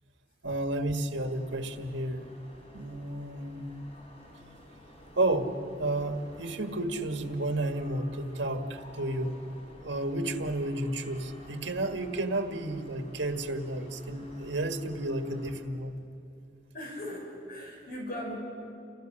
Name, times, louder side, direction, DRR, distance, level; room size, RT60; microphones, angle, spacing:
voice 1, 0.4-2.2 2.7-3.7 5.2-9.4 9.8-16.0, right 1 dB, 75° right, 6 dB, 1.7 m, -32 dB
sound 1, 1.2-15.5, equal, 30° left, 4.5 m, -52 dB
voice 2, 16.7-18.4, left 1 dB, 50° left, 0 dB, 5.7 m, -38 dB
30.0 x 24.5 x 6.6 m, 2.5 s
head